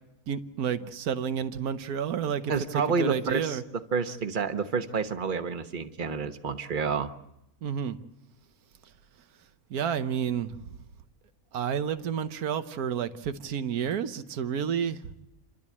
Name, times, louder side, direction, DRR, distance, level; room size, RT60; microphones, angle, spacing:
voice 1, 0.3-2.5 3.0-3.6 7.6-8.0 9.7-10.6 11.5-15.3, right 8 dB, 80° right, 11 dB, 1.4 m, -30 dB
voice 2, 2.5-3.6 3.9-7.1, right 5 dB, 35° right, 8 dB, 1.1 m, -29 dB
29.5 x 12.0 x 8.5 m, 0.88 s
omnidirectional pair, 1.6 m